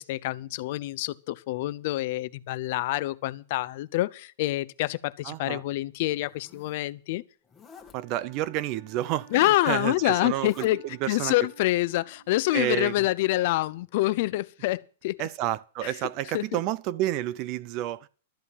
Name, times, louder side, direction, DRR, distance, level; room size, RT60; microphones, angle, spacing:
voice 1, 0.0-7.2 9.3-15.2 16.3-16.4, left 17 dB, 50° left, 0.6 m, -27 dB
voice 2, 5.2-5.6 7.9-11.5 12.5-12.9 15.2-18.1, right 14 dB, 35° right, 0.5 m, -30 dB
Zipper (clothing), 6.1-6.8 7.4-8.0 9.1-9.8 10.2-10.7, left 5 dB, 10° left, 1.7 m, -52 dB
Wind instrument woodwind instrument, 7.9-12.7, right 7 dB, 65° right, 2.7 m, -53 dB
13.0 x 8.4 x 7.2 m
supercardioid pair, 160°, 0 cm